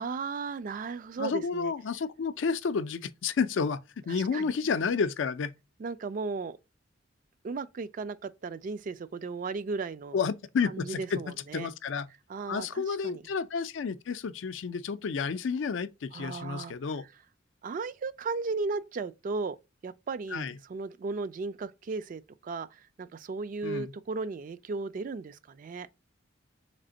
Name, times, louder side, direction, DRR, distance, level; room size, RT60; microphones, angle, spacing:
voice 1, 0.0-1.7 4.1-4.5 5.8-6.6 7.4-10.2 10.7-11.7 12.3-13.2 16.1-16.7 17.6-19.6 19.8-25.9, right 4 dB, 45° right, 0.3 m, -35 dB
voice 2, 1.2-5.5 10.1-11.2 11.5-12.1 12.5-17.0 20.3-20.6 23.6-23.9, left 5 dB, 75° left, 0.4 m, -30 dB
3.4 x 3.3 x 3.8 m
head